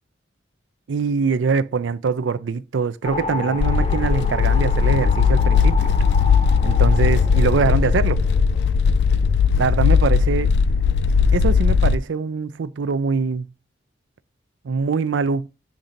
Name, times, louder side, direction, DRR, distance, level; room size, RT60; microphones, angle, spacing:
voice 1, 0.9-5.9 6.6-8.2 9.6-10.5 11.3-13.5 14.6-15.5, right 5 dB, 85° right, 0.5 m, -23 dB
sound 1, 3.0-9.5, left 2 dB, 35° left, 0.6 m, -31 dB
sound 2, 3.6-12.0, left 6 dB, 60° left, 0.3 m, -18 dB
7.3 x 2.6 x 5.0 m
head